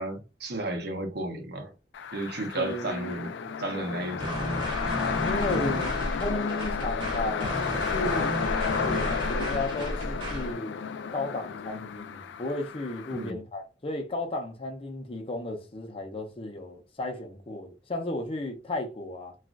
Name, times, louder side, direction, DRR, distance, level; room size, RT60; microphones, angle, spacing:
voice 1, 0.0-1.7 2.1-3.3 3.6-4.4 13.1-13.4, right 2 dB, 60° right, 0.7 m, -33 dB
sound 1, 1.9-13.3, left 6 dB, 75° left, 0.3 m, -32 dB
voice 2, 2.5-3.3 5.2-8.3 8.8-10.8 11.1-19.4, left 2 dB, 30° left, 0.6 m, -34 dB
sound 2, 4.2-10.5, equal, 30° right, 0.9 m, -33 dB
3.0 x 2.4 x 2.4 m
head